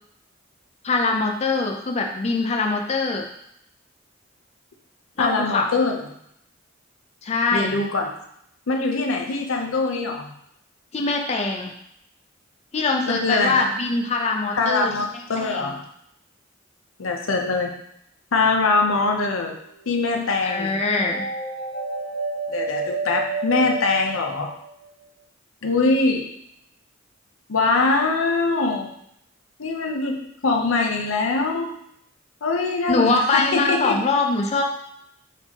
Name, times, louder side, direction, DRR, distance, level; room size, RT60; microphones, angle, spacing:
voice 1, 0.8-3.3 5.2-5.7 7.2-7.7 10.9-11.7 12.7-14.9 15.4-15.7 20.4-21.3 32.9-34.6, left 3 dB, 35° left, 2 dB, 0.5 m, -23 dB
voice 2, 5.2-6.0 7.5-8.1 8.7-10.3 13.1-13.7 14.5-15.8 17.0-17.7 18.3-19.5 19.9-20.7 22.5-24.5 25.6-26.3 27.5-28.9 29.6-30.2 30.4-31.7 32.4-34.0, left 3 dB, 85° left, 3 dB, 0.7 m, -22 dB
sound 1, 18.9-19.6 21.0-24.8, right 4 dB, 70° left, 1.7 m, -30 dB
4.4 x 4.2 x 2.9 m, 0.73 s
head